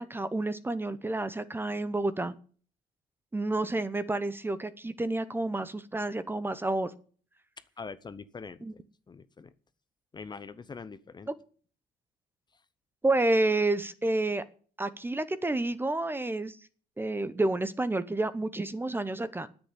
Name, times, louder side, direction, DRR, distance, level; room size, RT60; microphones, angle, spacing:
voice 1, 0.0-2.4 3.3-6.9 8.6-8.7 13.0-14.4 14.8-16.6 17.0-19.5, right 2 dB, 10° right, 14 dB, 0.9 m, -29 dB
voice 2, 7.8-8.8 9.1-9.5 10.1-11.3, left 5 dB, 25° left, 13 dB, 0.8 m, -43 dB
9.8 x 8.2 x 8.7 m, 0.43 s
cardioid pair, 110°, 17 cm